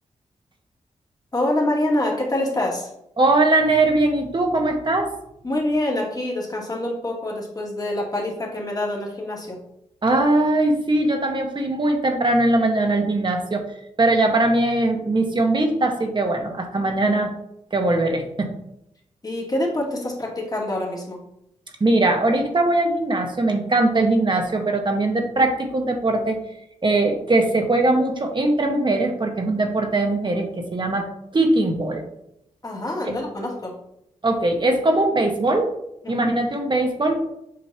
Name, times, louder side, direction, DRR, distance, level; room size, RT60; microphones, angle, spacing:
voice 1, 1.3-2.9 5.4-9.6 19.2-21.2 32.6-33.8 36.0-36.3, left 1 dB, 30° left, -3 dB, 2.3 m, -26 dB
voice 2, 3.2-5.1 10.0-17.3 17.7-18.5 21.8-26.4 26.8-30.5 30.7-31.1 31.3-32.0 33.0-33.2 34.2-35.7 36.1-37.2, right 2 dB, 40° right, 3 dB, 1.4 m, -20 dB
7.7 x 5.3 x 2.9 m, 0.78 s
cardioid pair, 75°, 13 cm